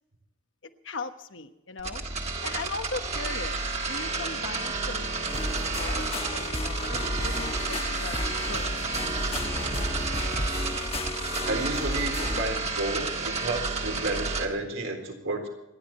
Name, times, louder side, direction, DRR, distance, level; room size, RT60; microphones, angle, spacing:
voice 1, 0.8-2.0 2.4-8.2 8.5-9.5, left 3 dB, 65° left, 7 dB, 1.2 m, -39 dB
sound 1, 1.8-14.5, right 3 dB, 30° right, 1.8 m, -31 dB
sound 2, 5.3-12.4, left 2 dB, 30° left, 1.2 m, -33 dB
voice 2, 11.5-15.5, right 2 dB, 85° right, 2 dB, 3.9 m, -31 dB
27.5 x 11.0 x 4.4 m, 0.93 s
head